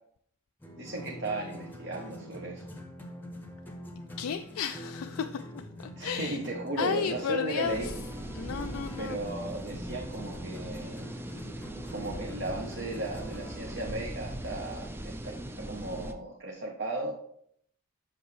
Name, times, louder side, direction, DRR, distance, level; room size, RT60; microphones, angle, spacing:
sound 1, 0.6-13.7, equal, 10° left, 0.8 m, -44 dB
voice 1, 0.8-2.6 5.9-7.9 9.0-11.0 11.9-17.1, right 2 dB, 50° right, 1.0 m, -36 dB
voice 2, 4.2-5.6 6.0-6.4 6.8-7.9 8.3-9.2, left 7 dB, 70° left, 0.3 m, -33 dB
sound 2, 7.6-16.1, right 1 dB, 10° right, 0.4 m, -40 dB
7.9 x 5.9 x 3.2 m
head